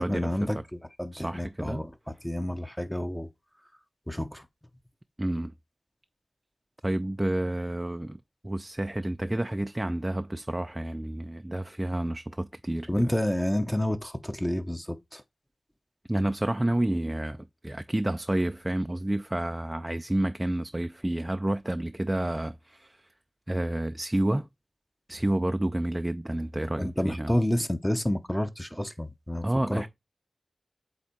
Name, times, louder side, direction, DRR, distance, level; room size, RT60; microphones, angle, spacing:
voice 1, 0.0-3.3 4.1-4.5 12.9-15.2 26.8-29.9, left 1 dB, 10° left, 0.7 m, -29 dB
voice 2, 1.1-1.8 5.2-5.5 6.8-13.1 16.1-23.1 23.5-24.5 25.1-27.3 29.4-29.9, right 1 dB, 20° right, 0.3 m, -29 dB
8.1 x 2.9 x 4.3 m
wide cardioid pair, 65°, 0 cm